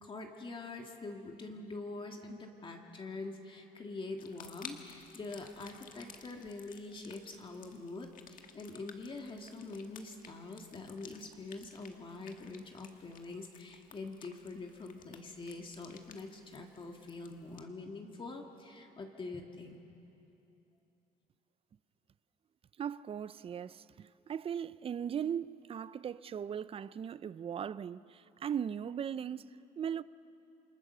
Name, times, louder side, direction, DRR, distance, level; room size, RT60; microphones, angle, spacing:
voice 1, 0.0-19.8, left 3 dB, 30° left, 1.9 m, -45 dB
sound 1, 4.2-17.6, left 7 dB, 50° left, 1.7 m, -55 dB
voice 2, 22.8-30.0, right 8 dB, 35° right, 0.5 m, -38 dB
28.5 x 21.5 x 6.8 m
cardioid pair, 110°, 17 cm